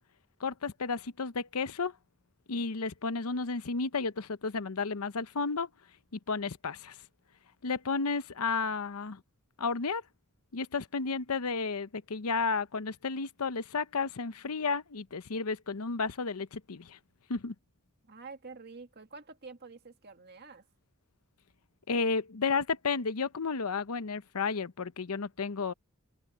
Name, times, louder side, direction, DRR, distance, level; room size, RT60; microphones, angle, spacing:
voice 1, 0.4-1.9 2.5-5.7 6.3-7.0 7.6-9.2 9.6-10.0 10.5-17.0 17.3-17.5 21.9-25.7, left 4 dB, 85° left, 0.8 m, -32 dB
voice 2, 18.0-20.7, right 4 dB, 50° right, 2.0 m, -48 dB
head